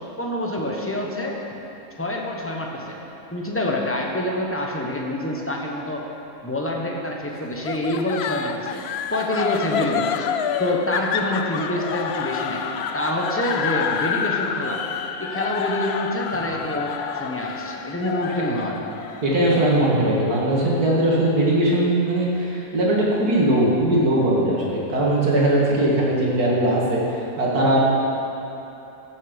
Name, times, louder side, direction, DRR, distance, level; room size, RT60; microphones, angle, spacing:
voice 1, 0.2-1.4 2.0-3.0 3.3-6.0 6.4-8.8 9.1-10.2 10.6-14.8 15.2-18.8, left 1 dB, 10° left, -1 dB, 1.1 m, -26 dB
sound 1, 7.7-20.8, left 7 dB, 70° left, 0.6 m, -28 dB
voice 2, 19.2-27.0 27.4-27.8, right 1 dB, 90° right, -4 dB, 2.6 m, -20 dB
15.0 x 7.1 x 5.3 m, 3.0 s
omnidirectional pair, 1.6 m